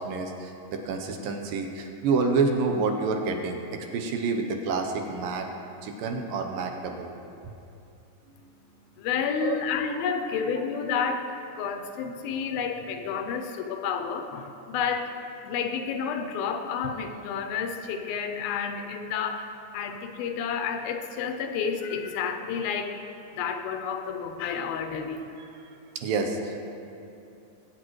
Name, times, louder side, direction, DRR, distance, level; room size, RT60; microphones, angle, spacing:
voice 1, 0.0-3.6 3.9-5.5 5.8-7.1 9.4-9.6 26.0-26.6, right 4 dB, 75° right, 3 dB, 2.4 m, -28 dB
voice 2, 9.0-11.3 11.5-15.2 15.4-23.0 23.3-25.3, left 6 dB, 85° left, 6 dB, 2.5 m, -30 dB
20.5 x 8.7 x 3.1 m, 2.7 s
omnidirectional pair, 4.3 m